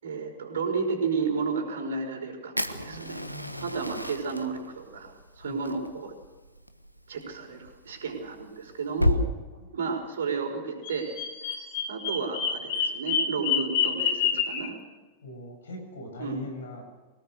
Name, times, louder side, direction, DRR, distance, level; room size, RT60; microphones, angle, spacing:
voice 1, 0.0-3.2 3.6-6.1 7.1-9.2 9.7-11.1 11.4-11.6 11.9-14.8 16.2-16.4, right 5 dB, 65° right, 4 dB, 5.4 m, -32 dB
Fire, 2.6-9.2, left 1 dB, 90° right, 1.3 m, -33 dB
voice 2, 2.8-3.9 5.4-5.6 9.6-9.7 15.2-16.8, left 1 dB, 65° left, 4 dB, 7.8 m, -42 dB
Bird vocalization bird call bird song, 10.8-14.7, left 7 dB, 50° left, 3.4 m, -28 dB
25.0 x 18.5 x 6.7 m, 1.2 s
figure-of-eight pair, 90°, 0 cm